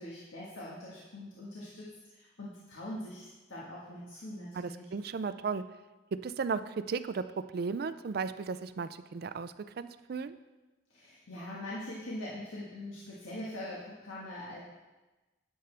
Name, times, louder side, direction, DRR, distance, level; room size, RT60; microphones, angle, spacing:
voice 1, 0.0-4.9 10.9-14.6, left 1 dB, 85° left, -6 dB, 1.6 m, -43 dB
voice 2, 4.6-5.6 6.1-10.4, right 5 dB, 50° right, 12 dB, 0.4 m, -35 dB
10.5 x 8.0 x 3.4 m, 1.2 s
head